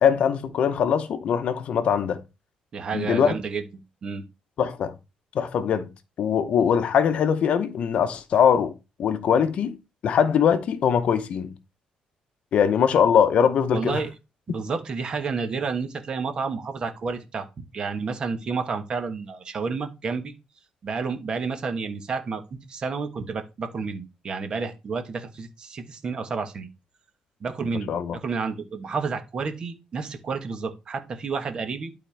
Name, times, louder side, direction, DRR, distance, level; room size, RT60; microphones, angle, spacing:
voice 1, 0.0-2.2 2.9-3.4 4.6-4.9 5.3-5.9 6.2-9.8 10.0-11.5 12.5-14.0 27.9-28.2, left 7 dB, 55° left, 0.8 m, -22 dB
voice 2, 2.7-3.6 4.0-4.2 13.7-14.1 14.5-17.5 17.7-20.3 20.8-26.7 27.4-31.9, right 4 dB, 35° right, 1.3 m, -30 dB
11.5 x 4.2 x 3.4 m
cardioid pair, 145°, 2 cm